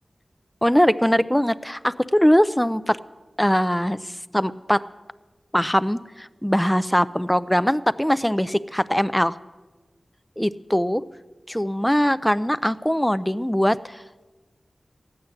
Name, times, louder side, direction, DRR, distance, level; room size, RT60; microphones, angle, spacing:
voice 1, 0.6-3.0 3.4-4.0 4.3-4.8 5.5-9.4 10.4-11.0 11.5-14.0, equal, 5° left, 15 dB, 0.5 m, -21 dB
14.5 x 9.7 x 7.7 m, 1.2 s
wide cardioid pair, 60°, 0 cm